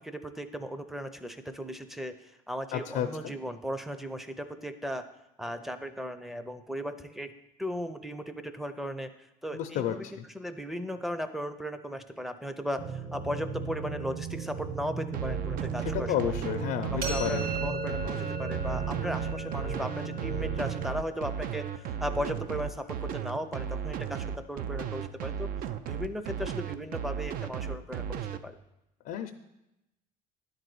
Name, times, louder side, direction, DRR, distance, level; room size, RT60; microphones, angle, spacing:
voice 1, 0.0-5.1 5.4-7.3 7.6-9.1 9.4-10.0 10.3-16.3 16.9-25.5 25.8-28.6, equal, ahead, 10 dB, 0.6 m, -36 dB
voice 2, 2.7-3.3 9.5-10.2 15.9-17.5 29.1-29.3, left 10 dB, 75° left, 5 dB, 0.6 m, -31 dB
sound 1, 12.8-20.9, right 6 dB, 45° right, 1.1 m, -36 dB
sound 2, 15.1-28.4, right 8 dB, 65° right, 0.6 m, -35 dB
sound 3, 17.0-22.8, right 1 dB, 80° right, 2.6 m, -39 dB
10.5 x 4.0 x 7.6 m, 0.90 s
cardioid pair, 125°, 16 cm